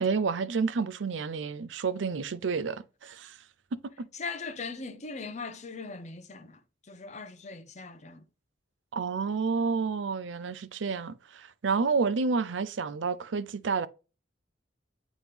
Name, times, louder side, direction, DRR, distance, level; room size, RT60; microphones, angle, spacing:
voice 1, 0.0-3.4 4.0-4.1 8.9-13.9, right 5 dB, 85° right, 0.5 m, -30 dB
voice 2, 4.1-6.6 6.9-8.3, left 4 dB, 40° left, 0.7 m, -39 dB
9.1 x 3.0 x 3.5 m
head